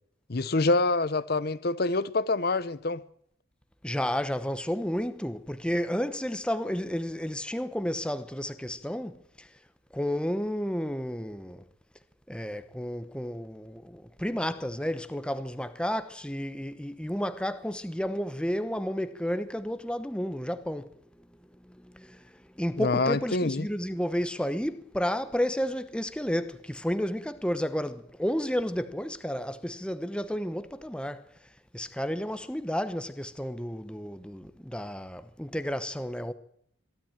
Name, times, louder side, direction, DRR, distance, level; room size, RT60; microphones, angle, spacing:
voice 1, 0.3-3.0 22.8-23.7, left 3 dB, 50° left, 0.7 m, -26 dB
voice 2, 3.8-9.5 9.9-11.6 12.3-20.9 21.2-21.3 21.6-31.3 31.7-36.3, equal, 5° left, 0.9 m, -32 dB
22.5 x 13.0 x 8.9 m
head